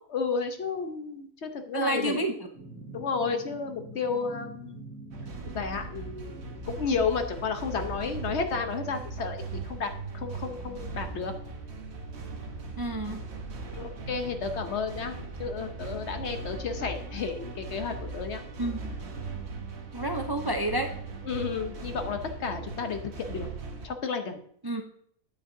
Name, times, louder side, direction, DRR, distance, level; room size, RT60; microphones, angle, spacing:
voice 1, 0.1-2.2 2.9-4.9 5.4-11.3 13.7-18.4 21.2-23.5 23.8-24.4, left 5 dB, 55° left, 6 dB, 1.1 m, -32 dB
voice 2, 1.7-2.3 12.8-13.2 18.6-19.0 19.9-20.9 24.6-24.8, right 1 dB, 35° right, 4 dB, 0.4 m, -29 dB
sound 1, 2.5-8.4, right 2 dB, 10° left, 3.6 m, -46 dB
sound 2, 5.1-23.9, right 3 dB, 55° right, 1.3 m, -39 dB
9.2 x 8.6 x 2.7 m, 0.68 s
omnidirectional pair, 1.5 m